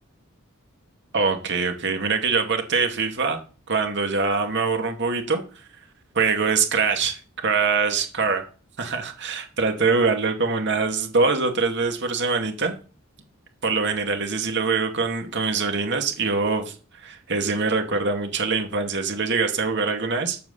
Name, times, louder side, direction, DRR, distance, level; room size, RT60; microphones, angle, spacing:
voice 1, 1.1-3.4 3.7-5.4 6.1-8.4 8.8-12.8 13.6-20.4, right 4 dB, 55° right, 5 dB, 2.5 m, -23 dB
13.5 x 5.0 x 8.4 m, 0.36 s
head